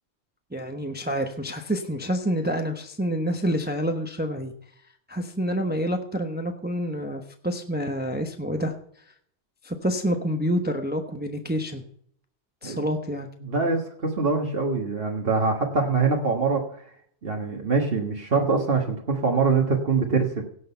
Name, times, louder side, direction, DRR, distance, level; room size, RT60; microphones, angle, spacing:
voice 1, 0.5-4.5 5.1-8.7 9.6-11.8 12.6-13.3, equal, 10° right, 5 dB, 0.9 m, -28 dB
voice 2, 13.4-16.6 17.2-20.4, right 4 dB, 60° right, 1 dB, 1.7 m, -24 dB
17.0 x 6.5 x 5.6 m, 0.64 s
omnidirectional pair, 1.1 m